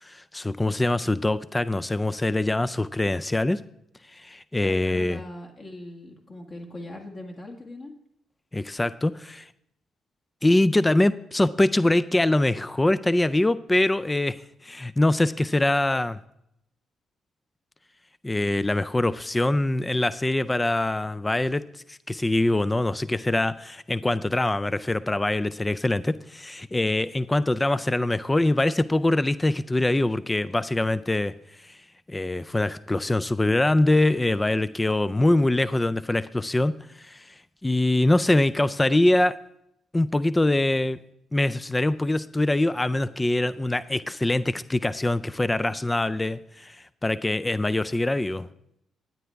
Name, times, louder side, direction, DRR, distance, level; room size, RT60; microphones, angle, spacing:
voice 1, 0.0-3.6 4.1-5.2 8.5-9.5 10.4-14.4 14.6-16.2 18.2-21.6 21.9-31.3 31.6-31.8 32.1-37.3 37.6-39.4 39.9-41.0 41.3-48.5, left 1 dB, 15° left, 15 dB, 0.3 m, -23 dB
voice 2, 4.6-7.9, left 1 dB, 40° left, 1 dB, 1.8 m, -41 dB
13.0 x 9.3 x 3.4 m, 0.77 s
cardioid pair, 90°, 0 cm